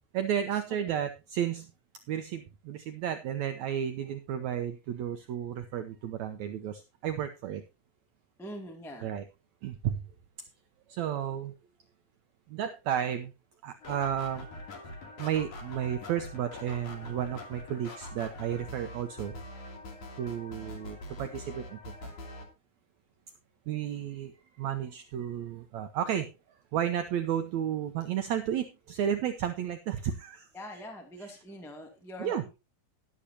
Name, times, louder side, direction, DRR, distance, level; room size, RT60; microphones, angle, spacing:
voice 1, 0.1-1.7 2.1-7.6 9.0-9.3 9.6-10.0 10.9-11.5 12.5-13.3 13.6-14.5 15.2-19.3 20.2-22.1 23.7-26.3 26.7-30.5 31.2-31.3 32.2-32.4, right 9 dB, 75° right, 7 dB, 1.7 m, -32 dB
voice 2, 8.4-9.1 30.5-32.5, equal, ahead, 2 dB, 1.7 m, -43 dB
sound 1, 13.8-22.5, left 1 dB, 60° left, 4.1 m, -44 dB
13.5 x 11.5 x 2.8 m, 0.26 s
omnidirectional pair, 4.1 m